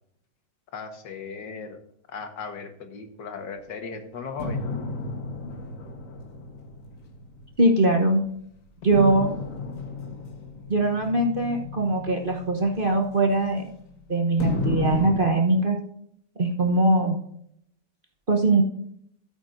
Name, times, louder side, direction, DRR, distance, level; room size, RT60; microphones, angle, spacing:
voice 1, 0.7-1.8 2.1-4.7, left 5 dB, 75° left, 6 dB, 2.0 m, -37 dB
sound 1, 4.4-8.1 8.9-13.9 14.4-15.2, left 4 dB, 50° left, 1.6 m, -33 dB
voice 2, 7.6-8.2 8.8-9.3 10.7-13.7 14.1-15.8 16.4-17.2 18.3-18.6, right 2 dB, 35° right, 2 dB, 1.0 m, -21 dB
14.0 x 8.7 x 2.6 m, 0.70 s
omnidirectional pair, 1.9 m